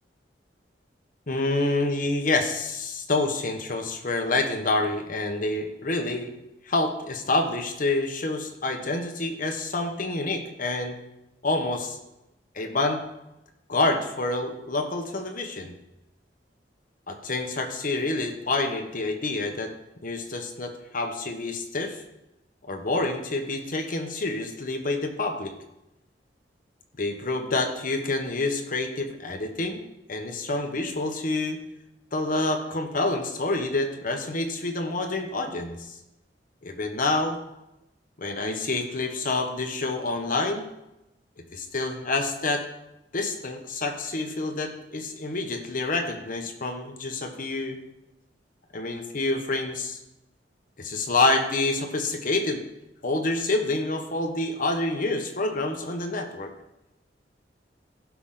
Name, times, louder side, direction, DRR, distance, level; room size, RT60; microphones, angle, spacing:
voice 1, 1.3-6.3 6.7-11.0 11.4-12.0 12.5-13.0 13.7-15.7 17.1-19.7 20.0-22.0 22.7-25.5 27.0-29.8 30.1-31.6 32.1-36.0 36.6-37.4 38.2-40.6 41.5-42.6 43.1-47.8 48.7-50.0 50.8-52.6 53.0-56.5, left 2 dB, 50° left, 4 dB, 1.2 m, -27 dB
16.0 x 6.0 x 3.8 m, 0.91 s
head